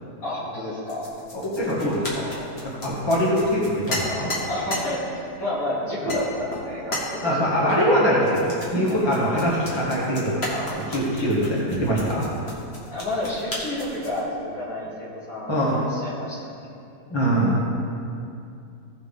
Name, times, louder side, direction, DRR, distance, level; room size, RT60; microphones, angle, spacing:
voice 1, 0.2-1.1 4.5-7.4 12.9-16.4, left 1 dB, 55° left, -8 dB, 2.9 m, -30 dB
sound 1, 0.9-4.9 5.5-5.7 6.1-6.3 6.5-7.1 8.2-14.2, left 1 dB, 40° left, 2.0 m, -34 dB
voice 2, 1.3-2.4 2.6-4.3 7.2-12.2 15.5-15.8 17.1-17.6, equal, 15° left, -6 dB, 1.9 m, -23 dB
17.0 x 6.2 x 3.6 m, 2.5 s
omnidirectional pair, 1.7 m